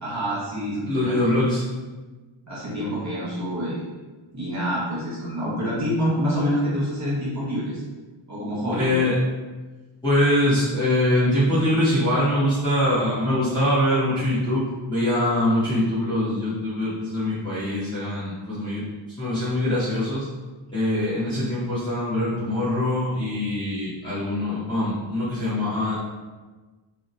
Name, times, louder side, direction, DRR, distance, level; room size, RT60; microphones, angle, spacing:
voice 1, 0.0-1.4 2.5-3.8 4.3-7.8 8.3-8.9, equal, 35° right, -9 dB, 1.2 m, -27 dB
voice 2, 0.9-1.6 8.8-9.1 10.0-20.3 20.7-26.0, left 1 dB, 10° left, -12 dB, 0.7 m, -23 dB
2.7 x 2.0 x 2.5 m, 1.3 s
wide cardioid pair, 100°, 49 cm